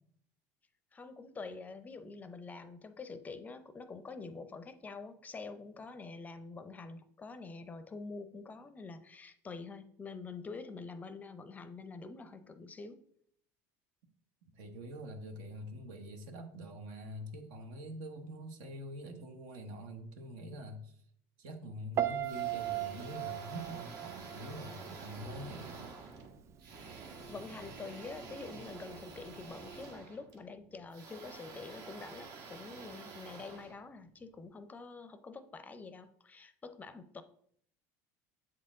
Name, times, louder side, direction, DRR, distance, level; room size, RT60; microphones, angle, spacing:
voice 1, 0.9-13.0 27.3-37.2, left 4 dB, 20° left, 11 dB, 0.5 m, -46 dB
voice 2, 14.6-21.0 21.4-25.7, equal, 75° right, 5 dB, 1.1 m, -45 dB
Piano, 22.0-25.1 25.3-25.8, right 12 dB, 40° right, 0.4 m, -37 dB
sound 1, 22.2-34.4, right 4 dB, 55° right, 1.1 m, -49 dB
7.5 x 4.3 x 3.7 m, 0.66 s
supercardioid pair, 115°, 7 cm